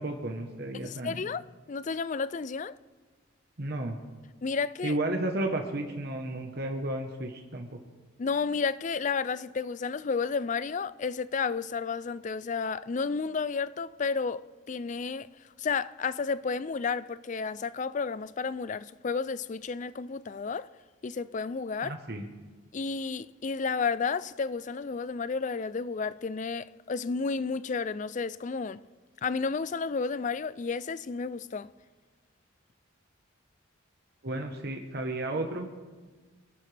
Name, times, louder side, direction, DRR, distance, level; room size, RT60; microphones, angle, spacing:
voice 1, 0.0-1.2 3.6-4.0 4.8-7.8 21.8-22.3 34.2-35.7, right 1 dB, 50° right, 1.1 m, -33 dB
voice 2, 0.8-1.4 1.7-2.7 4.4-5.0 8.2-15.3 15.6-20.7 21.0-21.9 22.7-28.8 29.2-31.7, left 5 dB, 40° left, 0.4 m, -32 dB
25.5 x 11.5 x 3.4 m
head